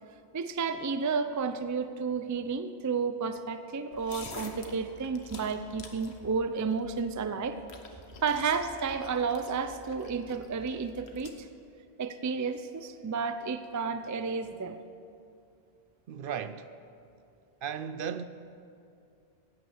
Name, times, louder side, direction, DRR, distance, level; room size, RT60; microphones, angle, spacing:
voice 1, 0.3-7.6 8.2-11.5 12.0-14.8, right 5 dB, 25° right, 0.4 m, -32 dB
sound 1, 3.9-11.3, left 3 dB, 85° left, 1.4 m, -48 dB
voice 2, 16.1-16.7 17.6-18.2, right 7 dB, 65° right, 0.7 m, -35 dB
16.0 x 9.4 x 6.3 m
omnidirectional pair, 1.1 m